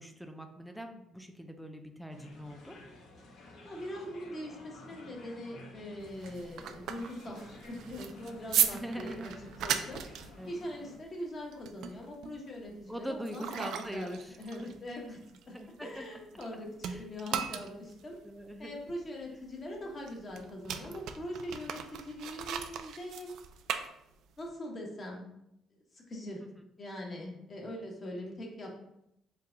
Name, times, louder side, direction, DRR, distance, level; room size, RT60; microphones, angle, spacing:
voice 1, 0.0-2.8 8.7-9.3 10.4-10.5 12.9-14.3 15.5-16.1 16.9-17.0 18.2-18.8 26.6-26.7, equal, ahead, 5 dB, 0.4 m, -42 dB
sound 1, 2.1-11.0, left 2 dB, 65° left, 1.0 m, -52 dB
voice 2, 3.6-9.3 9.6-10.0 10.5-15.2 15.5-15.6 15.8-18.2 18.6-23.3 24.4-25.3 25.9-26.4 26.8-28.8, left 1 dB, 30° left, -1 dB, 1.0 m, -42 dB
sound 2, 6.0-16.5 16.8-24.5, right 9 dB, 75° right, 0.3 m, -37 dB
4.6 x 2.3 x 3.8 m, 0.79 s
cardioid pair, 130°, 0 cm